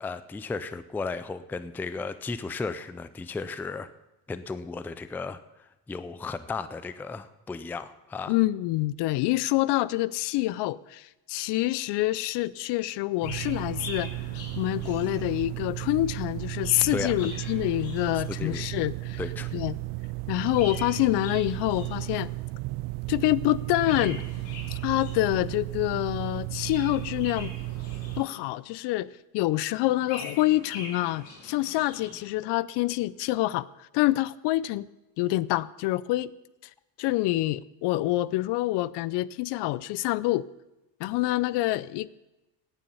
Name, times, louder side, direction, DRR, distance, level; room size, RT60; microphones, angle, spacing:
voice 1, 0.0-3.9 4.3-5.4 5.9-8.3 16.9-17.1 18.3-18.6 19.2-19.5, left 4 dB, 5° left, 13 dB, 0.3 m, -34 dB
voice 2, 8.3-14.1 14.6-19.2 19.5-19.7 20.3-22.3 23.1-24.2 24.7-27.5 28.2-33.7 33.9-34.9 35.2-36.3 37.0-40.4 41.0-42.2, left 17 dB, 65° left, 20 dB, 0.6 m, -26 dB
Chirp tweet, 13.1-15.6 16.3-18.8 20.3-22.5 23.7-25.6 26.4-28.7 29.8-32.3, left 3 dB, 85° left, 3.9 m, -44 dB
sound 1, 13.2-28.2, right 23 dB, 70° right, 0.5 m, -34 dB
17.0 x 9.2 x 5.5 m, 0.98 s
cardioid pair, 120°, 44 cm